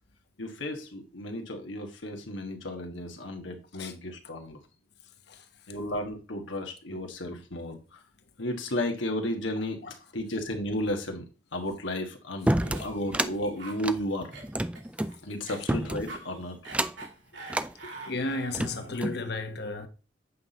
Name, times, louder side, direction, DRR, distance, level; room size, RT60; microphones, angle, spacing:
voice 1, 0.4-4.6 5.7-8.0 8.4-11.3 11.5-14.4 15.2-16.6 17.8-17.9, left 1 dB, 85° left, 1.5 m, -33 dB
Cough, 12.4-19.0, right 3 dB, 70° right, 3.0 m, -46 dB
sound 1, 12.5-13.3 13.8-15.1 15.7-16.2 16.7-17.1 17.5-17.7 18.3-19.2, right 1 dB, 5° right, 0.3 m, -29 dB
voice 2, 18.0-19.9, left 2 dB, 60° left, 1.3 m, -33 dB
8.5 x 5.9 x 4.1 m
head